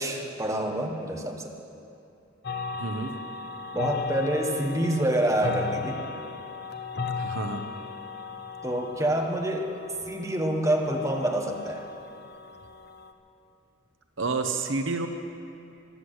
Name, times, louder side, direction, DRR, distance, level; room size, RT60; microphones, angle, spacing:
voice 1, 0.0-1.5 3.7-6.0 8.6-9.7 10.1-11.8, right 1 dB, 15° right, 1 dB, 1.3 m, -27 dB
sound 1, 2.4-13.1, left 5 dB, 55° left, 0.8 m, -36 dB
voice 2, 2.8-3.1 7.2-7.6 14.2-15.1, right 3 dB, 70° right, 6 dB, 0.9 m, -29 dB
14.0 x 11.5 x 8.0 m, 2.6 s
head